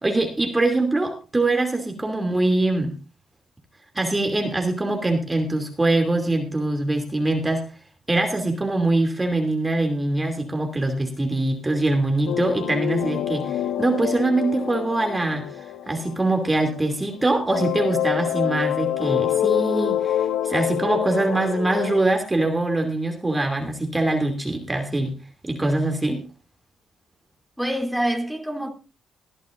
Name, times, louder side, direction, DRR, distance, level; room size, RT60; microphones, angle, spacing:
voice 1, 0.0-2.9 3.9-7.6 8.1-25.2 25.4-26.2, right 2 dB, 15° right, 2.7 m, -23 dB
sound 1, 12.3-17.1 17.5-22.0, left 11 dB, 90° left, 1.0 m, -26 dB
voice 2, 27.6-28.7, right 1 dB, ahead, 3.0 m, -26 dB
21.0 x 11.0 x 2.6 m
cardioid pair, 90°, 0 cm